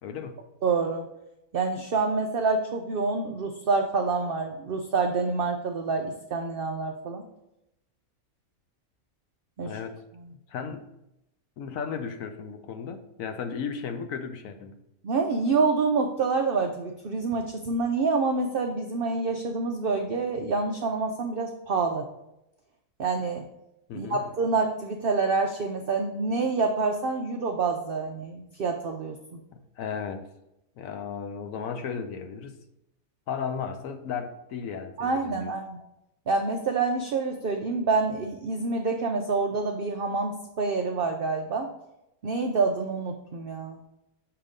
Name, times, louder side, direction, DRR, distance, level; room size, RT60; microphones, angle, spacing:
voice 1, 0.0-0.4 9.6-10.0 10.3-10.9 11.6-14.7 23.9-24.3 29.5-30.2 30.8-32.6 33.3-35.5, left 6 dB, 70° left, 7 dB, 1.0 m, -35 dB
voice 2, 0.6-1.0 1.5-7.2 9.6-9.8 15.0-22.1 23.0-23.5 23.9-29.4 35.0-35.8 36.3-41.7 42.2-43.8, right 4 dB, 70° right, 3 dB, 0.5 m, -27 dB
6.8 x 2.9 x 5.0 m, 0.85 s
omnidirectional pair, 1.6 m